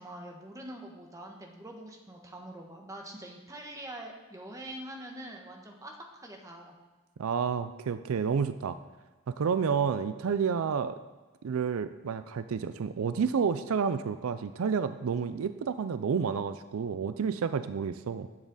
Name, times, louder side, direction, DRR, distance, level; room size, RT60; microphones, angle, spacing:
voice 1, 0.0-6.7, right 1 dB, 15° right, 2 dB, 1.2 m, -44 dB
voice 2, 7.2-8.8 9.4-11.0 11.4-18.3, right 6 dB, 80° right, 12 dB, 0.4 m, -30 dB
10.5 x 7.3 x 4.0 m, 1.2 s
head